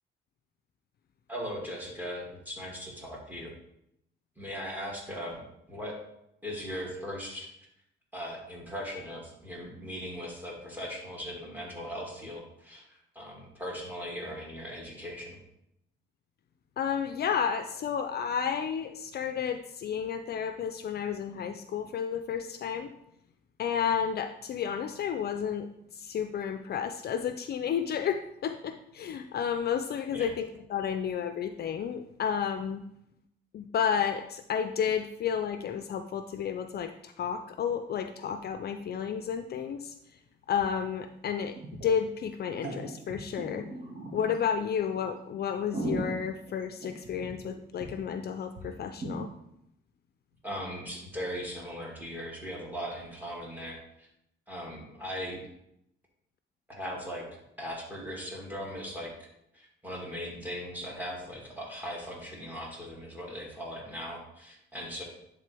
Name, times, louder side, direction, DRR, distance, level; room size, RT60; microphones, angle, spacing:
voice 1, 1.3-3.5 4.4-6.0 6.4-7.5 8.1-15.4 30.1-30.3 50.4-54.1 54.5-55.4 56.7-59.3 59.5-65.0, equal, 10° right, -2 dB, 2.4 m, -39 dB
voice 2, 16.8-22.9 23.6-25.7 25.9-32.8 33.5-39.9 40.5-41.6 41.8-43.7 44.1-49.3, left 7 dB, 55° left, 8 dB, 0.4 m, -31 dB
sound 1, 40.6-40.7 40.9-41.0 41.6-42.0 42.4-44.4 44.9-45.0 45.5-47.5 47.8-47.9 48.2-48.3 48.5-48.6 49.0-49.2, right 2 dB, 40° right, 1.9 m, -37 dB
10.5 x 3.7 x 3.4 m, 0.80 s
cardioid pair, 90°, 20 cm